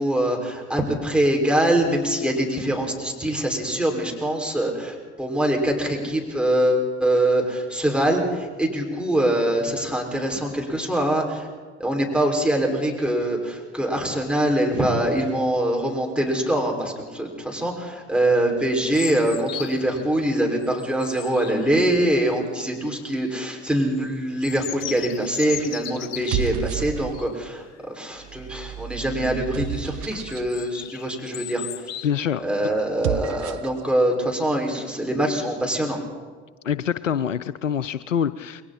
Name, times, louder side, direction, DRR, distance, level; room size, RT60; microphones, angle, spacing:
voice 1, 0.0-11.5 11.8-32.1 32.4-36.0, right 1 dB, 5° right, 0 dB, 6.0 m, -23 dB
sound 1, 18.9-20.0 20.5-22.2 22.9-23.3 23.7-26.6 27.1-27.4 27.7-27.8 28.2-28.6 29.1-29.7 30.2-32.1, left 12 dB, 45° left, 0.9 m, -37 dB
sound 2, 24.8-25.3 26.1-27.4 28.2-30.5 32.8-33.8, right 10 dB, 70° right, 1.2 m, -31 dB
voice 2, 32.0-32.4 36.6-38.6, left 8 dB, 90° left, 15 dB, 0.6 m, -25 dB
29.5 x 22.0 x 4.4 m, 1.5 s
figure-of-eight pair, 65°, 37 cm